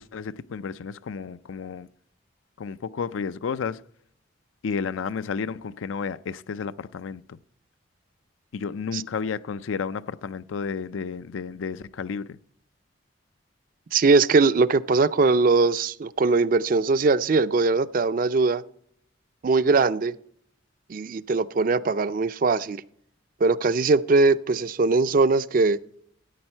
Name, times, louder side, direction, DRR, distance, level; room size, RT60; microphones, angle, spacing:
voice 1, 0.0-1.9 2.6-3.8 4.6-7.4 8.5-12.4, left 5 dB, 85° left, 0.4 m, -32 dB
voice 2, 13.9-18.6 19.4-20.1 20.9-22.8 23.4-25.8, right 3 dB, 45° right, 0.4 m, -21 dB
14.0 x 8.8 x 4.4 m
head